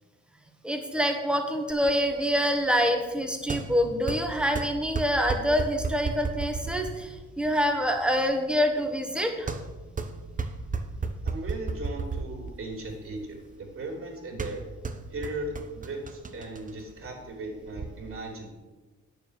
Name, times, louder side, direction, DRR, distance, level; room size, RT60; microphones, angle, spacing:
voice 1, 0.6-9.5, equal, 5° right, 3 dB, 1.7 m, -26 dB
sound 1, 1.7-17.9, right 4 dB, 25° right, 1.0 m, -36 dB
voice 2, 11.2-14.6 15.1-18.5, right 2 dB, 45° right, -1 dB, 3.2 m, -37 dB
9.2 x 7.2 x 6.5 m, 1.3 s
cardioid pair, 90°, 30 cm